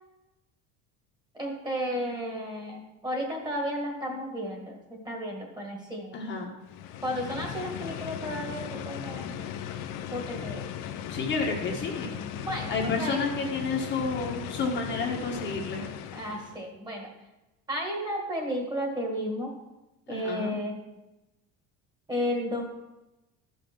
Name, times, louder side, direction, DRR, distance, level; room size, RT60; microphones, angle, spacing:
voice 1, 1.3-6.2 7.0-9.5 10.1-10.7 12.4-13.2 16.1-17.1 17.7-19.5 20.1-20.8 22.1-22.6, equal, 10° right, 1 dB, 1.8 m, -33 dB
voice 2, 6.1-6.5 11.1-12.1 12.7-15.8 20.1-20.6, left 4 dB, 35° left, -1 dB, 1.3 m, -30 dB
sound 1, 6.6-16.7, left 9 dB, 65° left, 0.8 m, -37 dB
13.0 x 5.7 x 6.0 m, 1.0 s
cardioid pair, 170°, 34 cm